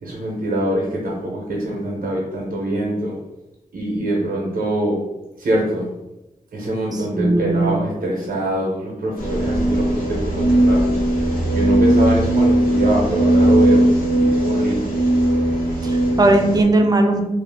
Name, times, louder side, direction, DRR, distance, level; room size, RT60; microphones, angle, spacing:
voice 1, 0.0-3.1 3.7-5.0 5.4-5.9 6.5-11.0 11.5-14.9, right 1 dB, 80° right, -3 dB, 0.6 m, -24 dB
voice 2, 6.9-7.8 15.8-17.2, right 2 dB, 25° right, 4 dB, 0.4 m, -18 dB
sound 1, 9.2-16.6, right 1 dB, 85° left, 0.8 m, -18 dB
2.4 x 2.1 x 3.3 m, 0.97 s
wide cardioid pair, 85°, 15 cm